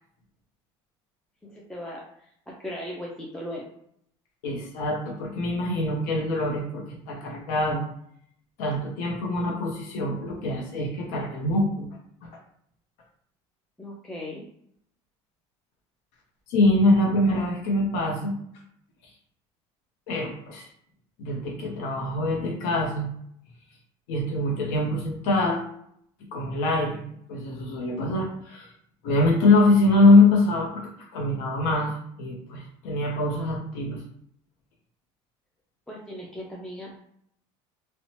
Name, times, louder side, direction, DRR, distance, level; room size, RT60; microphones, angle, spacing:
voice 1, 1.4-2.0 2.6-3.7 13.8-14.5 35.9-37.1, left 1 dB, 5° left, -3 dB, 0.3 m, -37 dB
voice 2, 4.4-7.8 8.6-11.9 16.5-18.3 20.1-20.7 21.2-23.1 24.1-25.6 26.3-27.0 27.3-28.7 29.0-34.0, left 2 dB, 80° left, 0 dB, 0.6 m, -23 dB
2.8 x 2.1 x 2.8 m, 0.69 s
cardioid pair, 140°, 12 cm